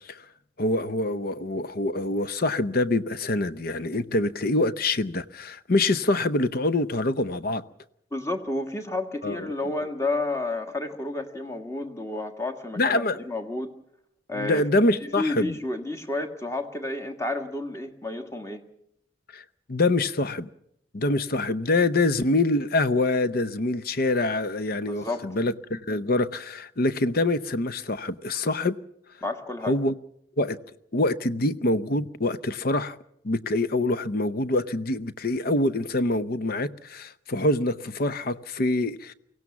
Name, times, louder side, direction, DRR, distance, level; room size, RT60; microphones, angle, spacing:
voice 1, 0.6-7.6 9.2-9.7 12.8-13.2 14.3-15.6 19.3-19.4 19.7-20.5 20.9-28.8 29.7-29.9 30.4-30.6 30.9-33.0 33.2-39.1, left 2 dB, 50° left, 0.8 m, -25 dB
voice 2, 8.1-13.7 14.3-14.7 15.0-18.6 24.7-25.3 29.2-29.8, left 2 dB, 15° left, 1.5 m, -31 dB
23.5 x 17.0 x 7.2 m
head